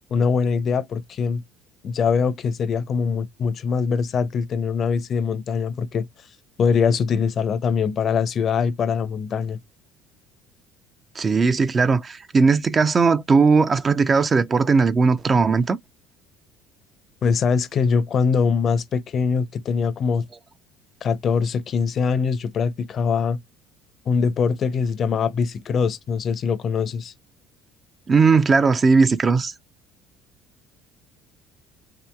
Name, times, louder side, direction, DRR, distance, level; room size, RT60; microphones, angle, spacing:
voice 1, 0.1-1.4 1.8-6.1 6.6-9.6 17.2-20.2 21.0-23.4 24.1-27.1, left 5 dB, 45° left, 0.6 m, -22 dB
voice 2, 11.2-15.8 28.1-29.5, right 4 dB, 30° right, 0.4 m, -18 dB
3.0 x 2.9 x 2.2 m
supercardioid pair, 100°, 0 cm